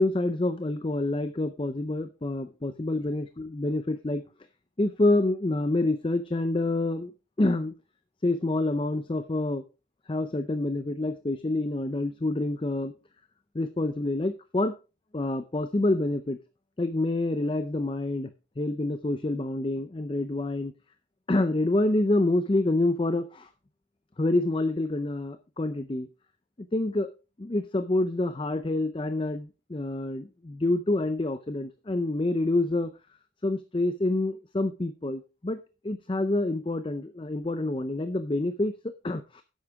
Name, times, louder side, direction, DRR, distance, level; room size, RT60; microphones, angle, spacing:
voice 1, 0.0-4.2 4.8-7.1 7.4-7.7 8.2-9.6 10.1-12.9 13.5-14.7 15.1-16.4 16.8-20.7 21.3-23.5 24.2-26.1 26.6-27.1 27.4-32.9 33.4-35.6 35.8-39.4, left 2 dB, 25° left, 10 dB, 0.5 m, -27 dB
11.0 x 8.2 x 3.5 m, 0.30 s
head